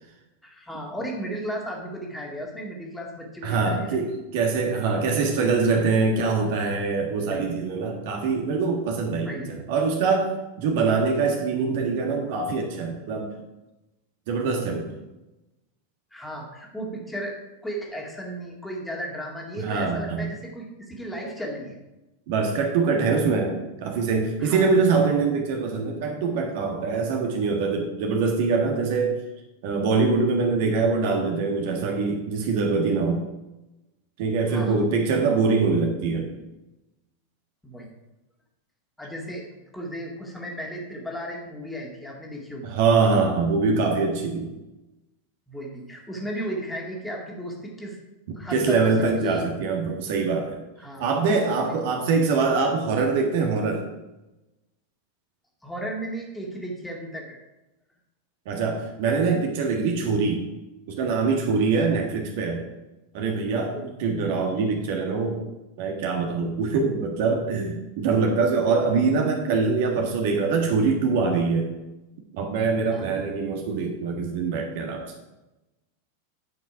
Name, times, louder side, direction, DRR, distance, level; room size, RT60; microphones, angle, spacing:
voice 1, 0.4-4.0 7.2-7.5 9.1-9.5 16.1-17.4 17.6-21.8 24.4-24.7 34.5-34.9 37.6-37.9 39.0-39.4 39.7-42.8 45.5-48.0 48.3-49.4 50.8-51.1 51.6-51.8 55.6-57.4 63.7-63.9 72.9-73.1, equal, 5° left, -1 dB, 2.1 m, -35 dB
voice 2, 3.4-13.3 14.3-15.0 19.6-20.3 22.3-29.2 29.6-33.2 34.2-36.3 42.6-44.5 48.5-50.6 51.0-53.8 58.4-60.4 60.9-62.6 63.1-65.4 65.8-71.7 72.3-75.1, right 4 dB, 50° right, 2 dB, 1.6 m, -24 dB
10.5 x 5.9 x 5.0 m, 1.0 s
figure-of-eight pair, 90°, 0 cm